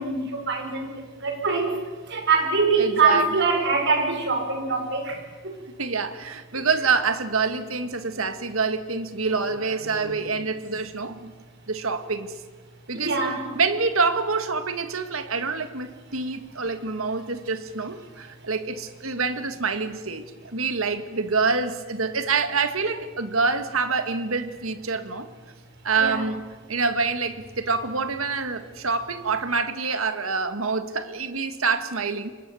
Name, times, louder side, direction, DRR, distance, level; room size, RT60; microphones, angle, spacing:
voice 1, 0.0-5.6 6.5-6.6 12.9-13.5 26.0-26.2, right 4 dB, 60° right, 5.3 m, -24 dB
voice 2, 2.8-3.3 5.8-11.3 11.7-12.3 12.9-13.1 13.5-25.3 25.8-26.4 26.7-32.3, right 4 dB, 90° right, 1.9 m, -26 dB
28.0 x 23.5 x 7.2 m
head